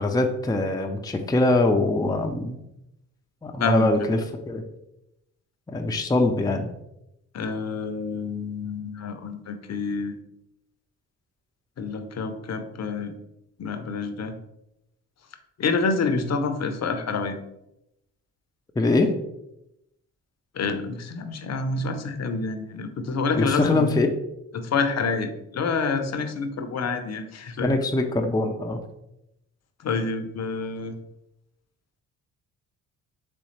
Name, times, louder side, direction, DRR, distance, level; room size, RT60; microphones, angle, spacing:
voice 1, 0.0-2.6 3.4-4.2 4.5-4.6 5.7-6.7 18.8-19.1 23.4-24.1 27.6-28.8, left 2 dB, 10° left, 4 dB, 0.5 m, -23 dB
voice 2, 3.6-3.9 7.3-10.1 11.8-13.1 13.6-14.3 15.6-17.4 20.5-23.9 24.5-27.8 29.8-31.0, left 4 dB, 45° left, 7 dB, 0.7 m, -28 dB
4.2 x 3.4 x 3.2 m, 0.84 s
hypercardioid pair, 50°, 37 cm